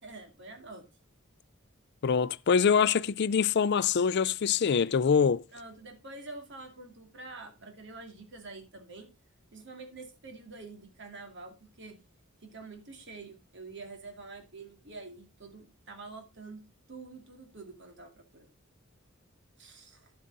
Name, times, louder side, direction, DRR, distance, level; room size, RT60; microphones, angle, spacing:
voice 1, 0.0-0.8 5.5-9.1 9.5-12.0 12.4-16.6 16.9-18.5 19.6-20.1, right 3 dB, 60° right, 2.4 m, -47 dB
voice 2, 2.0-5.4, left 6 dB, 55° left, 0.4 m, -24 dB
11.5 x 7.4 x 4.0 m
head